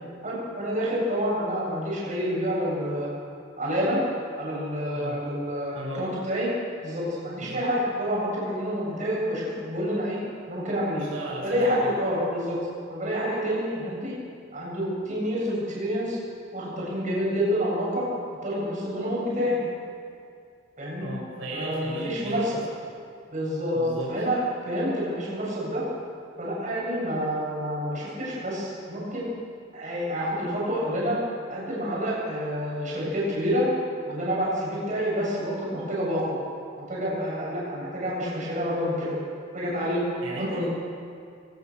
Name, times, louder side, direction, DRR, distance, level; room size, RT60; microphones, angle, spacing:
voice 1, 0.2-3.1 3.6-4.0 4.4-6.5 6.8-10.2 10.5-11.1 11.4-12.6 12.9-14.1 14.5-16.2 16.5-18.0 18.4-19.6 20.8-21.1 21.5-22.6 23.3-25.8 26.4-29.3 29.7-31.2 31.5-33.7 34.1-36.4 36.9-39.2 39.5-40.0 40.4-40.7, equal, 40° right, -5 dB, 8.0 m, -28 dB
voice 2, 5.7-6.1 7.4-7.6 11.1-11.9 21.0-22.6 23.7-24.2 40.2-40.7, right 1 dB, 80° right, -4 dB, 6.9 m, -35 dB
22.5 x 20.0 x 6.8 m, 2.3 s
head